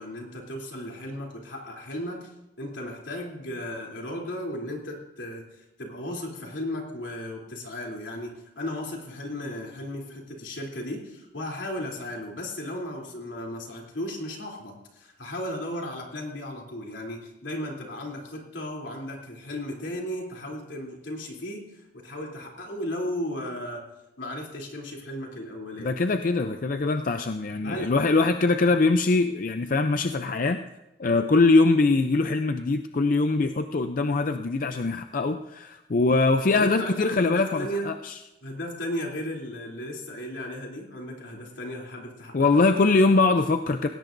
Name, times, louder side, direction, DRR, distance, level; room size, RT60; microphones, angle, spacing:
voice 1, 0.0-2.3 2.6-23.8 24.2-25.9 27.6-27.9 36.5-37.9 38.4-42.7, left 1 dB, 80° left, -1 dB, 3.2 m, -35 dB
voice 2, 25.8-30.6 31.0-38.1 42.3-43.9, left 3 dB, 45° left, 7 dB, 0.5 m, -22 dB
19.0 x 17.0 x 2.6 m, 0.94 s
head